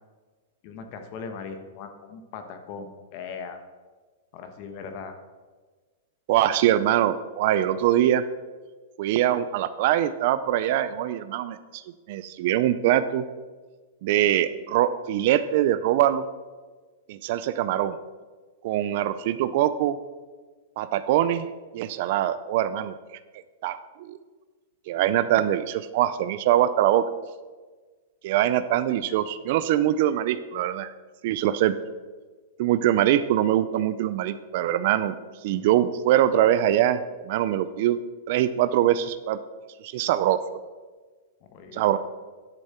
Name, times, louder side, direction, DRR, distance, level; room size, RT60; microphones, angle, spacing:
voice 1, 0.6-3.6 4.3-5.1 41.4-42.0, left 5 dB, 35° left, 7 dB, 1.0 m, -39 dB
voice 2, 6.3-8.2 9.0-11.8 12.1-13.2 14.0-16.2 17.1-18.0 18.6-20.0 20.8-21.5 21.7-22.9 23.6-24.2 24.9-27.0 28.2-30.9 31.2-31.7 32.6-35.2 35.4-38.0 38.3-39.4 39.8-40.6 41.7-42.0, right 12 dB, 40° right, 13 dB, 0.4 m, -23 dB
11.0 x 7.0 x 4.4 m, 1.4 s
supercardioid pair, 175°, 0 cm